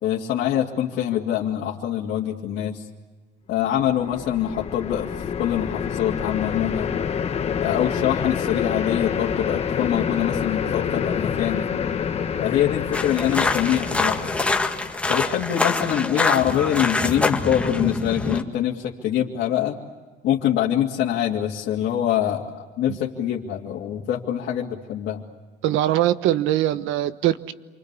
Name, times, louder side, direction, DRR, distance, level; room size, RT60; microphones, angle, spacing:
voice 1, 0.0-2.8 3.5-5.1 5.4-6.9 7.6-11.6 12.4-14.2 15.1-19.8 20.2-25.2, left 10 dB, 60° left, -3 dB, 2.6 m, -24 dB
sound 1, 3.8-15.1, left 7 dB, 30° left, 1.3 m, -27 dB
sound 2, 12.9-18.4, left 3 dB, 5° left, 1.8 m, -25 dB
voice 2, 25.6-27.5, right 13 dB, 75° right, 13 dB, 1.3 m, -22 dB
28.0 x 25.0 x 8.4 m, 1.4 s
cardioid pair, 140°, 21 cm